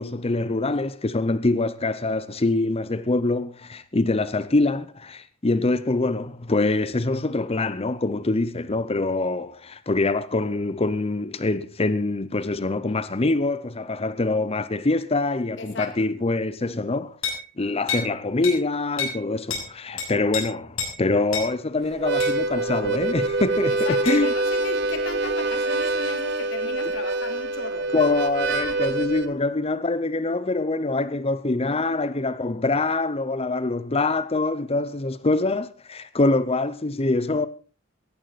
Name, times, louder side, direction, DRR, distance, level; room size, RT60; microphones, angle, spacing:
voice 1, 0.0-17.1 17.6-24.3 27.9-37.5, left 2 dB, 30° left, 0.7 m, -24 dB
voice 2, 15.6-15.9 23.7-27.9, left 3 dB, 65° left, 3.2 m, -36 dB
sound 1, 17.2-17.4 17.9-18.1 18.4-18.6 19.0-19.2 19.5-19.7 20.0-20.4 20.8-20.9 21.3-21.5 22.2-22.4 24.1-24.2, left 5 dB, 85° left, 7.1 m, -28 dB
Harmonica, 21.9-29.3, right 2 dB, 60° right, 1.4 m, -25 dB
18.0 x 14.0 x 4.1 m
head